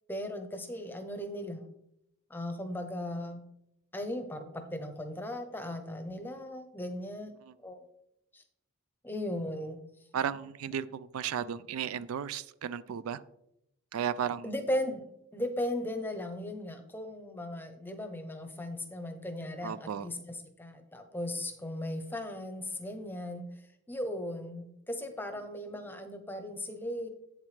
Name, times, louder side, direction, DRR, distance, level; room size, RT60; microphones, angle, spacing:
voice 1, 0.1-1.7 2.3-3.4 3.9-7.3 7.6-7.9 8.3-8.4 9.0-9.8 14.4-15.0 15.3-27.1, left 1 dB, 10° left, 7 dB, 0.7 m, -37 dB
voice 2, 10.1-13.2 13.9-14.5 19.6-20.1, right 8 dB, 75° right, 16 dB, 0.3 m, -34 dB
8.4 x 7.2 x 3.3 m, 0.80 s
head